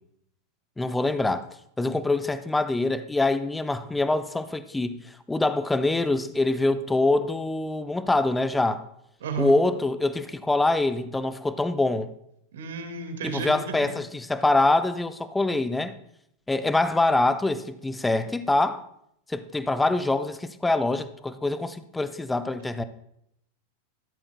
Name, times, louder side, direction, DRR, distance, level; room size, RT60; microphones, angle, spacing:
voice 1, 0.8-1.5 1.8-8.8 9.4-12.1 13.3-15.9 16.5-18.8 19.3-22.8, left 2 dB, 10° left, 0.6 m, -24 dB
voice 2, 9.2-9.5 12.5-13.7, right 4 dB, 60° right, 2.0 m, -32 dB
15.0 x 12.5 x 2.3 m
figure-of-eight pair, 90°, 0 cm